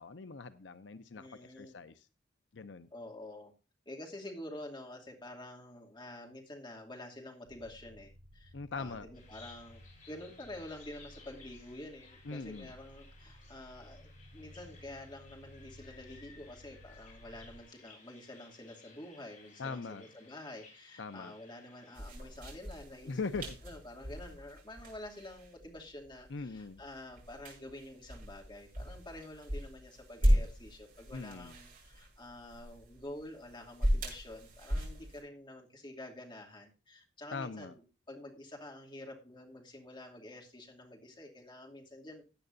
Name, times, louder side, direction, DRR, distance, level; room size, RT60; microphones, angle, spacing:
voice 1, 0.0-2.1 2.5-2.9 8.5-9.1 12.3-12.7 19.6-20.0 21.0-21.3 23.1-23.5 26.3-26.8 31.1-31.5 37.3-37.7, left 4 dB, 80° left, 0.6 m, -41 dB
voice 2, 1.2-1.8 2.9-3.5 3.9-9.8 10.1-42.2, left 1 dB, 25° left, 2.6 m, -48 dB
sound 1, 7.4-17.6, equal, 70° right, 1.2 m, -56 dB
Bird vocalization bird call bird song, 9.1-22.0, left 4 dB, 45° left, 6.3 m, -59 dB
sound 2, 21.9-35.2, equal, 50° right, 7.2 m, -36 dB
16.0 x 9.7 x 2.6 m
head